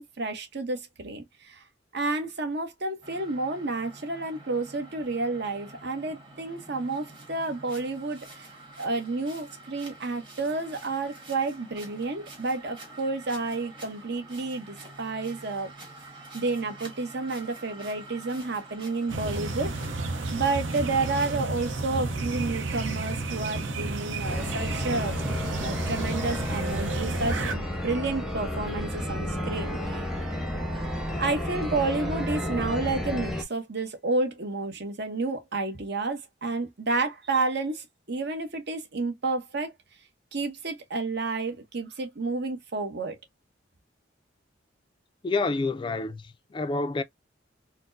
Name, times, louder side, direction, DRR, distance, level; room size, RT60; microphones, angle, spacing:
voice 1, 0.0-1.6 1.9-8.5 8.8-15.7 16.3-25.2 25.6-30.0 31.2-39.7 40.3-43.2, right 3 dB, 60° right, 1.0 m, -30 dB
sound 1, 3.0-21.5, right 2 dB, 25° right, 1.4 m, -47 dB
sound 2, 19.1-27.5, right 2 dB, 80° right, 0.7 m, -31 dB
sound 3, 24.2-33.4, left 1 dB, ahead, 0.7 m, -31 dB
voice 2, 45.2-47.0, left 3 dB, 25° left, 0.3 m, -28 dB
4.3 x 2.0 x 2.6 m
head